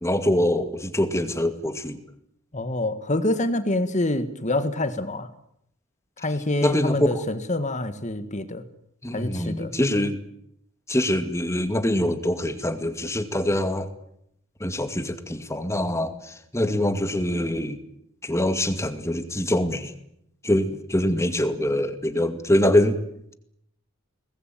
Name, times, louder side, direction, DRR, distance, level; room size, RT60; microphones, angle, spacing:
voice 1, 0.0-2.0 6.6-7.1 9.0-10.2 10.9-13.9 14.6-17.8 18.2-19.9 20.4-23.0, left 1 dB, 15° left, 10 dB, 2.3 m, -24 dB
voice 2, 2.5-5.3 6.2-8.6 9.1-9.7, left 2 dB, 35° left, 11 dB, 1.8 m, -26 dB
23.5 x 20.0 x 9.2 m, 0.72 s
head